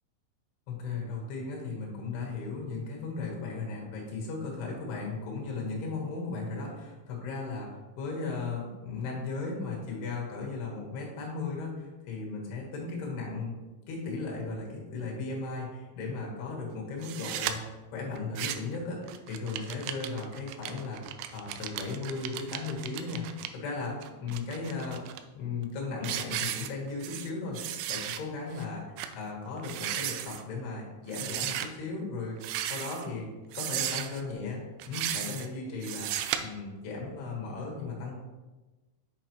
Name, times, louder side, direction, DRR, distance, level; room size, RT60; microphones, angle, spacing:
voice 1, 0.7-13.5 13.9-21.0 21.3-25.0 25.3-27.6 27.9-28.8 29.1-33.3 33.5-34.6 34.9-36.1 36.4-38.2, left 4 dB, 65° left, -2 dB, 3.1 m, -36 dB
sound 1, 17.0-17.5 18.2-18.8 19.1-23.5 24.0-25.2 25.6-25.8 26.0-27.3 27.5-28.2 28.6-28.7 29.0-29.1 29.6-30.4 31.1-31.7 32.4-33.1 33.5-34.2 34.8-35.5 35.8-36.4, right 11 dB, 85° right, 2.7 m, -35 dB
7.8 x 6.5 x 3.0 m, 1.2 s
omnidirectional pair, 5.9 m